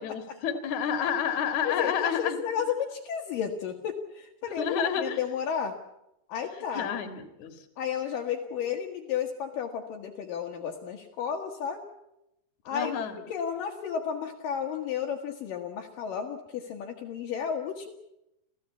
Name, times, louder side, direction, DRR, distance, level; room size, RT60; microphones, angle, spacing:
voice 1, 0.0-2.4 4.6-5.2 6.7-7.7 12.7-13.2, left 7 dB, 50° left, 7 dB, 2.4 m, -30 dB
voice 2, 1.6-5.7 6.3-6.9 7.8-11.9 12.6-12.9 13.3-17.9, left 7 dB, 65° left, 0 dB, 2.2 m, -32 dB
29.0 x 16.0 x 8.3 m, 0.86 s
omnidirectional pair, 5.9 m